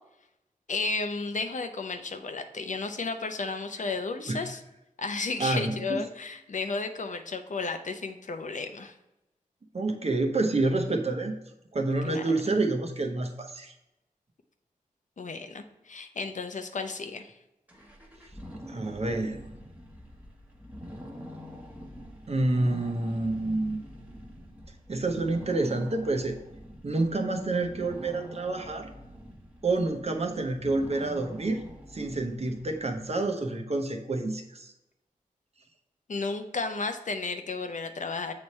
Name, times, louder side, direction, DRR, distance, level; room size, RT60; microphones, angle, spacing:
voice 1, 0.7-4.6 5.0-8.9 12.0-12.3 15.2-17.3 36.1-38.3, left 4 dB, 60° left, 7 dB, 0.6 m, -33 dB
voice 2, 5.4-6.0 9.7-11.3 11.7-13.7 18.7-19.5 22.3-23.8 24.9-26.4 26.8-28.9 29.6-31.6 31.9-34.7, right 2 dB, 45° right, 4 dB, 0.8 m, -28 dB
sound 1, 17.7-33.1, equal, 10° right, 1.1 m, -45 dB
7.1 x 3.3 x 4.2 m, 0.90 s
wide cardioid pair, 60°, 14 cm